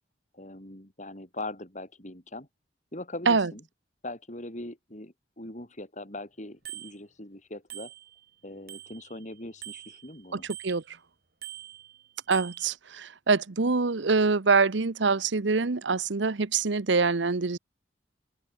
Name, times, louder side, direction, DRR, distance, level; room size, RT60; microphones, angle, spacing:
voice 1, 0.3-2.5 2.9-3.6 4.0-7.9 8.4-10.5, left 2 dB, 40° left, 5.0 m, -41 dB
Bicycle bell, 6.6-6.9 7.7-8.3 8.7-10.9 11.4-12.7, right 13 dB, 55° right, 3.5 m, -44 dB
voice 2, 10.3-11.0 12.3-17.6, right 4 dB, 75° right, 0.9 m, -25 dB
open air
head